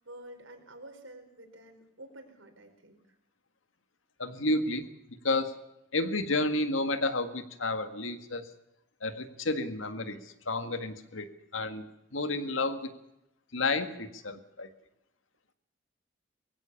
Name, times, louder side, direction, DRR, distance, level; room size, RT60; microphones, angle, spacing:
voice 1, 0.0-3.0, right 1 dB, 85° right, 5 dB, 4.9 m, -49 dB
voice 2, 4.2-4.9 5.2-5.7 5.9-8.4 9.0-10.2 10.5-11.9 12.1-12.9 13.5-14.7, left 2 dB, 90° left, 9 dB, 1.8 m, -31 dB
22.5 x 16.0 x 7.2 m, 0.85 s
head